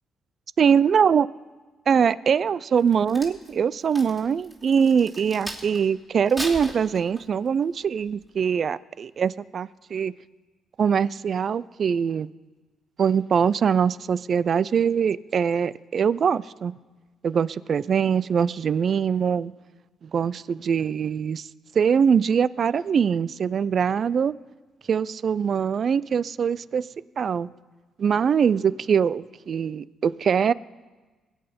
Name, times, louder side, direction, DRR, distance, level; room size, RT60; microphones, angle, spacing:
voice 1, 0.6-1.3 1.9-10.1 10.8-12.3 13.0-16.7 17.2-19.5 20.0-21.5 21.8-24.3 24.9-26.9 27.2-27.5 28.0-30.5, right 7 dB, 50° right, 20 dB, 0.4 m, -23 dB
Crack, 2.8-5.8 6.3-7.5 8.0-8.2, equal, 10° right, 2.8 m, -37 dB
21.5 x 8.7 x 5.2 m, 1.3 s
cardioid pair, 90°, 0 cm